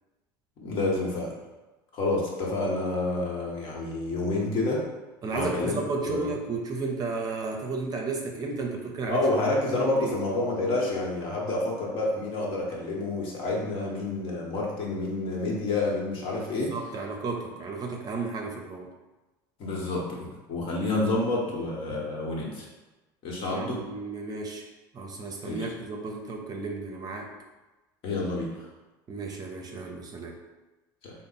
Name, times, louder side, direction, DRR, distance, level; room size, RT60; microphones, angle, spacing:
voice 1, 0.6-1.3 1.9-4.8 5.3-5.8 6.0-6.3 9.1-16.8 19.6-22.7 23.2-23.8 25.4-25.7 28.0-28.5 31.0-31.1, left 2 dB, 50° left, -3 dB, 1.1 m, -28 dB
voice 2, 5.2-9.3 9.7-10.1 16.5-18.9 23.5-24.6 24.9-27.3 29.1-30.4, right 3 dB, 35° right, 1 dB, 0.6 m, -33 dB
3.4 x 2.0 x 4.0 m, 1.1 s
supercardioid pair, 90°, 11 cm